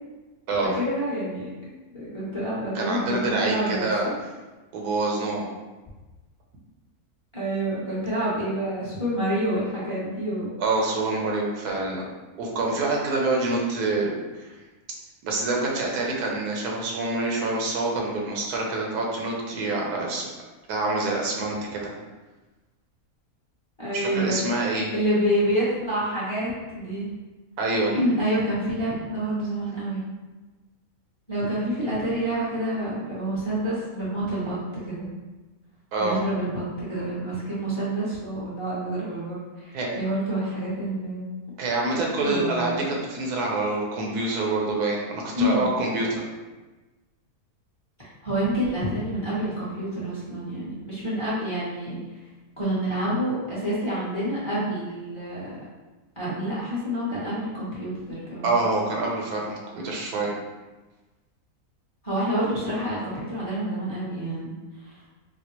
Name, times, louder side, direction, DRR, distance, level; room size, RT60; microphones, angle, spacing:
voice 1, 0.7-4.2 7.3-10.5 23.8-24.5 24.9-27.1 27.9-30.0 31.3-35.1 36.0-41.3 42.2-42.8 45.3-45.7 48.2-51.9 52.6-55.5 56.2-58.6 62.0-64.5 64.8-65.0, right 1 dB, 25° left, -9 dB, 0.8 m, -28 dB
voice 2, 2.7-4.1 4.7-5.5 10.6-12.0 12.4-14.5 15.2-20.3 20.7-21.9 23.9-24.9 27.6-27.9 35.9-36.2 39.7-39.9 41.6-46.2 58.4-60.3, right 2 dB, 90° right, -1 dB, 1.2 m, -26 dB
4.1 x 2.0 x 2.9 m, 1.2 s
omnidirectional pair, 1.6 m